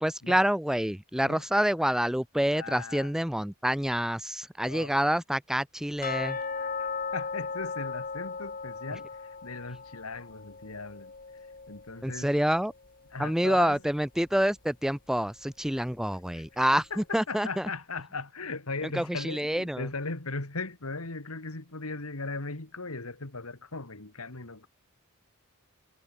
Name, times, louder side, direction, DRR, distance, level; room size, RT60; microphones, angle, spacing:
voice 1, 0.0-6.4 12.0-12.7 13.2-16.8 17.1-17.5 19.0-19.8, equal, ahead, 0.7 m, -27 dB
voice 2, 2.5-3.1 4.6-5.0 6.3-12.3 13.1-13.8 16.3-16.4 16.7-24.7, left 3 dB, 80° left, 2.5 m, -38 dB
sound 1, 6.0-12.9 13.2-13.3 13.8-13.9 14.4-14.5, left 5 dB, 40° left, 2.8 m, -37 dB
head